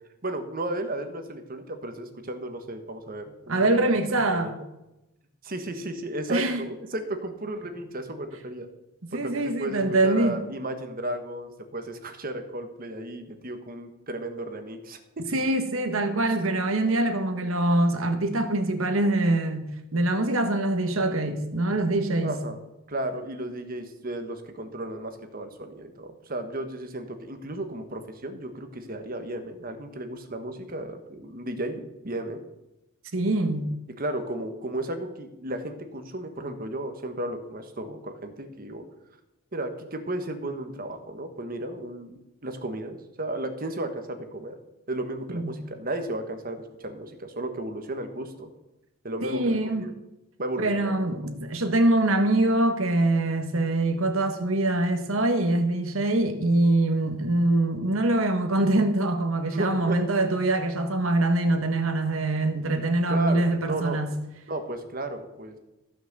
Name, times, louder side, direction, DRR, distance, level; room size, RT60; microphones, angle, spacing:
voice 1, 0.2-3.7 4.3-4.5 5.4-8.7 9.1-15.2 22.2-32.4 34.0-38.8 39.5-44.6 44.9-48.5 49.0-49.9 50.4-51.0 59.5-60.0 63.1-64.0 64.5-65.6, right 1 dB, 45° right, 1.4 m, -34 dB
voice 2, 3.5-4.6 6.3-6.6 9.1-10.4 15.3-22.4 33.1-33.7 45.3-45.6 49.2-49.9 50.6-64.1, right 2 dB, 85° right, 1.5 m, -24 dB
15.0 x 6.1 x 6.7 m
head